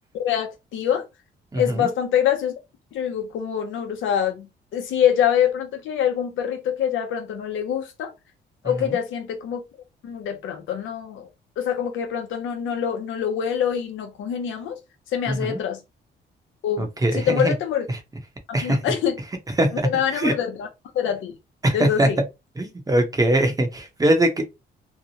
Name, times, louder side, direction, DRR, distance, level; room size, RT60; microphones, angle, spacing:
voice 1, 0.1-1.0 1.5-2.5 2.9-8.1 8.6-9.6 10.0-11.3 11.6-14.8 15.1-15.8 16.6-17.9 18.6-19.2 19.8-20.7 20.9-21.3 21.7-22.2, left 9 dB, 80° left, 0.8 m, -25 dB
voice 2, 1.5-1.9 8.8-9.0 15.3-15.6 16.8-17.5 17.9-18.0 18.5-18.8 19.6-20.3 21.6-22.1 22.6-24.4, right 1 dB, 20° right, 0.8 m, -22 dB
2.9 x 2.0 x 2.8 m
cardioid pair, 90°, 20 cm